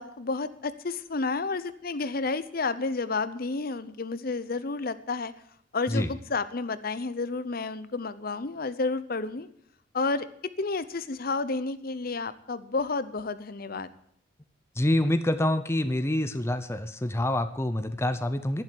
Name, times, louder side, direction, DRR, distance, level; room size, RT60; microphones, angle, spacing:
voice 1, 0.0-5.3 5.7-9.5 9.9-10.3 10.6-13.9, left 3 dB, 50° left, 14 dB, 0.7 m, -31 dB
voice 2, 14.8-18.6, left 1 dB, 15° left, 10 dB, 0.6 m, -26 dB
11.5 x 11.0 x 7.7 m, 0.68 s
head